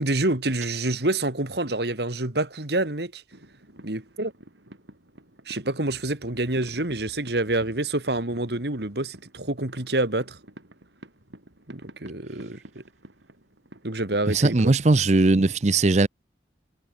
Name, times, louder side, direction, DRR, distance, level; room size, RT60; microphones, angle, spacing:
voice 1, 0.0-3.2 3.8-4.3 5.5-10.4 11.7-12.8 13.8-14.7, right 2 dB, 65° right, 2.4 m, -27 dB
sound 1, 3.3-14.2, right 1 dB, 80° right, 4.3 m, -50 dB
voice 2, 14.3-16.1, right 2 dB, 40° right, 0.6 m, -19 dB
head